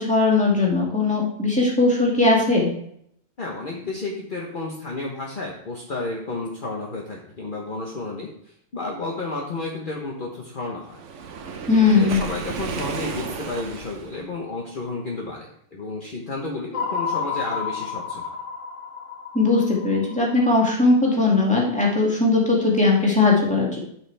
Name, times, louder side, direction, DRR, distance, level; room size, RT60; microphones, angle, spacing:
voice 1, 0.0-2.7 11.7-12.2 19.3-23.8, left 3 dB, 5° left, -4 dB, 2.1 m, -19 dB
voice 2, 3.4-11.0 11.9-18.4 23.4-23.5, left 3 dB, 40° left, -1 dB, 1.2 m, -32 dB
Waves surf, 10.9-14.2, right 5 dB, 65° right, 1.1 m, -33 dB
sound 1, 16.7-21.0, left 6 dB, 65° left, 1.2 m, -31 dB
10.5 x 5.7 x 3.3 m, 0.69 s
omnidirectional pair, 1.4 m